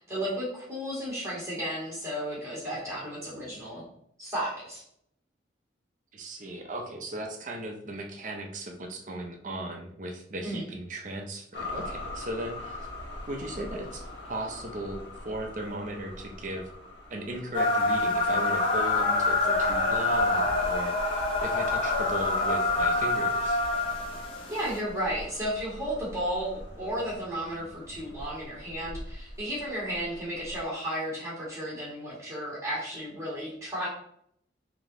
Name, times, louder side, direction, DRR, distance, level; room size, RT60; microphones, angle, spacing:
voice 1, 0.0-3.8 4.2-4.8 10.4-10.6 24.5-33.9, equal, 15° right, -7 dB, 1.5 m, -33 dB
voice 2, 6.1-12.9 13.3-16.7 17.1-23.6, right 1 dB, 45° right, 2 dB, 0.6 m, -37 dB
sound 1, 11.5-30.6, left 1 dB, 75° left, 1.0 m, -43 dB
sound 2, 17.5-24.8, left 2 dB, 30° left, 0.6 m, -26 dB
3.6 x 2.9 x 3.6 m, 0.69 s
head